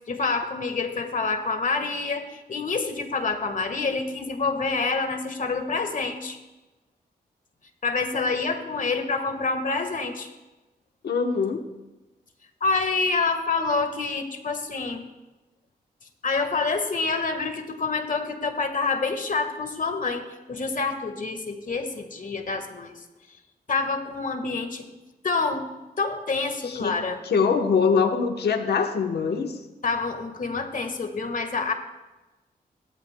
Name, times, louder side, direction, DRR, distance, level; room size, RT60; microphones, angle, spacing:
voice 1, 0.1-6.4 7.8-10.3 12.6-15.1 16.2-22.9 23.7-24.9 25.2-25.7 26.0-27.2 29.8-31.7, left 4 dB, 55° left, 7 dB, 1.5 m, -27 dB
voice 2, 11.0-11.6 26.7-27.0 27.3-29.6, left 5 dB, 80° left, 5 dB, 1.0 m, -23 dB
17.0 x 13.0 x 2.2 m, 1.1 s
cardioid pair, 65°, 17 cm